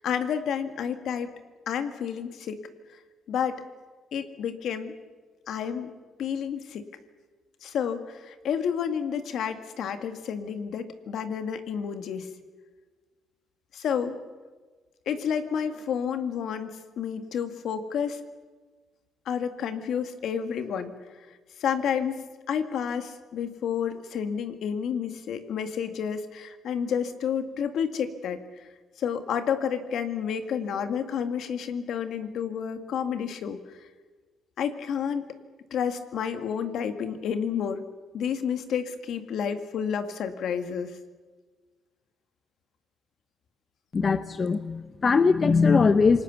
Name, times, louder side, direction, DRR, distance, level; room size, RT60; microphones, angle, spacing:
voice 1, 0.0-1.3 1.7-2.6 3.3-3.6 4.1-5.0 5.5-5.9 6.2-6.9 7.6-12.3 13.7-14.2 15.1-18.2 19.3-20.9 21.6-28.7 29.0-33.8 34.6-35.3 35.7-37.8 38.1-41.0, left 7 dB, 75° left, 9 dB, 1.9 m, -30 dB
voice 2, 43.9-46.2, left 4 dB, 40° left, 12 dB, 0.8 m, -21 dB
28.0 x 20.0 x 7.0 m, 1.4 s
cardioid pair, 90°, 0 cm